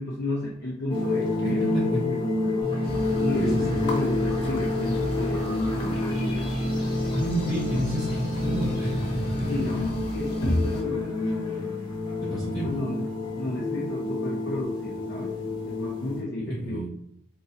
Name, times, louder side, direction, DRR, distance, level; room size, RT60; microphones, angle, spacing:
voice 1, 0.0-2.6 3.2-6.4 9.5-12.0 12.6-13.1 13.4-15.3 15.6-16.9, left 2 dB, 50° left, -4 dB, 0.6 m, -33 dB
sound 1, 0.9-16.2, left 3 dB, 25° left, 1.0 m, -30 dB
voice 2, 1.4-2.1 3.4-3.6 7.1-9.8 12.2-12.7 16.5-16.9, equal, 15° right, -7 dB, 0.7 m, -30 dB
sound 2, 2.6-9.9, equal, 60° right, 1.3 m, -32 dB
sound 3, 2.8-10.8, left 1 dB, 80° left, 1.0 m, -31 dB
3.8 x 3.0 x 2.8 m, 0.71 s
head